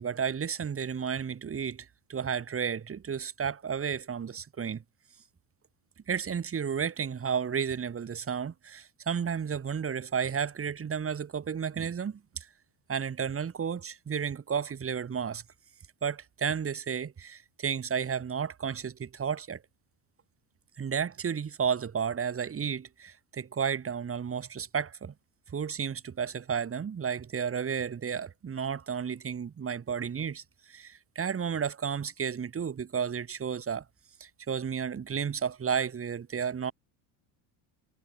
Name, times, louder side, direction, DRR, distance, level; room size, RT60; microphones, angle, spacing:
voice 1, 0.0-4.8 6.1-12.5 12.9-15.4 16.0-19.6 20.8-25.1 25.5-33.8 34.2-36.7, right 7 dB, 25° right, 3.4 m, -32 dB
cardioid pair, 120°, 48 cm